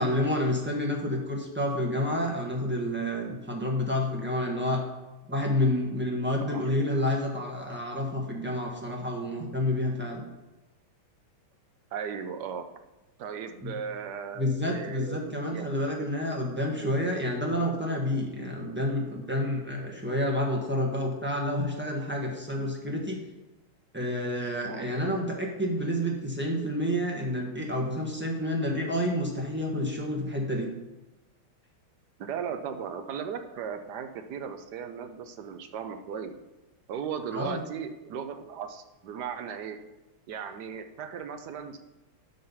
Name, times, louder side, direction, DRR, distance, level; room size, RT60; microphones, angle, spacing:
voice 1, 0.0-4.8 5.3-10.2 13.6-13.8 14.3-23.2 23.9-30.7 37.3-37.6, left 1 dB, 5° right, -1 dB, 1.1 m, -29 dB
voice 2, 11.9-12.7 13.2-15.7 24.7-24.9 32.2-36.3 36.9-39.8 40.3-41.8, right 7 dB, 65° right, 7 dB, 1.1 m, -37 dB
12.0 x 4.0 x 5.5 m, 1.1 s
omnidirectional pair, 2.4 m